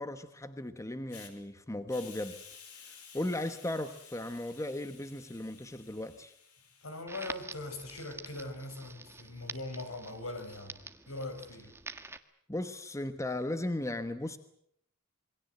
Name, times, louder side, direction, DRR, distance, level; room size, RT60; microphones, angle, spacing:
voice 1, 0.0-2.4 2.8-6.3 12.5-14.4, left 1 dB, 15° left, 1.2 m, -36 dB
Hiss, 1.1-1.3 1.9-7.0, left 6 dB, 85° left, 5.3 m, -53 dB
voice 2, 6.8-10.8 11.1-11.7, left 2 dB, 70° left, 5.3 m, -41 dB
Crackle, 7.1-12.2, right 3 dB, 10° right, 1.5 m, -47 dB
27.5 x 23.0 x 7.8 m
head